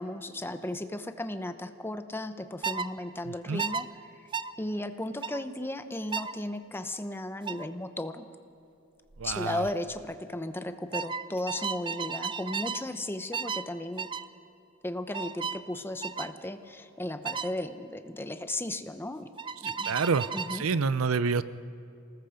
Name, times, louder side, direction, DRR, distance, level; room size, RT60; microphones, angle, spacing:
voice 1, 0.0-3.9 4.1-4.3 4.6-8.3 9.2-14.1 14.8-19.3 19.6-19.9 20.3-20.7, left 1 dB, 10° left, 9 dB, 0.8 m, -35 dB
sound 1, 2.6-2.9 3.6-3.8 4.3-4.5 5.2-5.4 6.1-6.4 7.5-7.7 9.1-9.4 9.7-10.0 10.9-12.9 13.3-13.7 14.0-14.3 15.1-15.6 16.0-16.3 17.2-17.5 19.4-20.7, right 5 dB, 25° right, 0.4 m, -34 dB
voice 2, 3.3-3.6 9.2-9.6 19.6-21.4, right 5 dB, 70° right, 15 dB, 0.6 m, -28 dB
27.0 x 19.5 x 5.1 m, 2.8 s
head